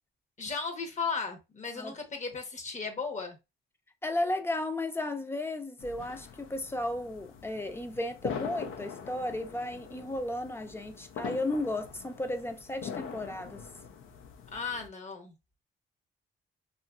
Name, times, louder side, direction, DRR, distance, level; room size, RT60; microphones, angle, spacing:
voice 1, 0.4-3.4 14.5-15.3, left 5 dB, 35° left, 0.8 m, -35 dB
voice 2, 4.0-13.6, left 1 dB, 10° left, 0.5 m, -34 dB
sound 1, 5.8-14.9, left 6 dB, 90° left, 0.5 m, -43 dB
2.8 x 2.5 x 2.2 m
cardioid pair, 90°, 20 cm